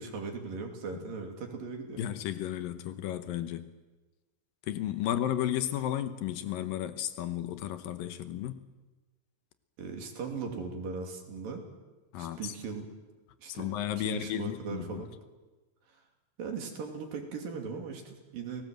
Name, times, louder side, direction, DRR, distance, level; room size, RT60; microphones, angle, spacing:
voice 1, 0.0-2.0 9.8-11.6 12.2-12.8 13.4-13.7 14.0-15.1 16.4-18.6, right 5 dB, 70° right, 4.6 m, -38 dB
voice 2, 2.0-3.7 4.7-8.7 12.1-12.5 13.5-15.0, left 11 dB, 75° left, 2.7 m, -33 dB
29.0 x 18.5 x 7.8 m
omnidirectional pair, 4.2 m